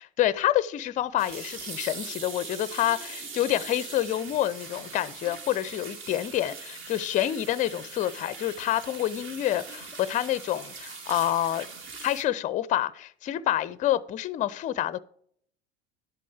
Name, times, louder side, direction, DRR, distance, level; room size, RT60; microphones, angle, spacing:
voice 1, 0.2-11.7 12.0-15.0, left 13 dB, 25° left, 0.5 m, -28 dB
sound 1, 1.0-12.2, right 4 dB, 40° right, 1.3 m, -41 dB
11.5 x 8.3 x 3.4 m
figure-of-eight pair, 70°, 33 cm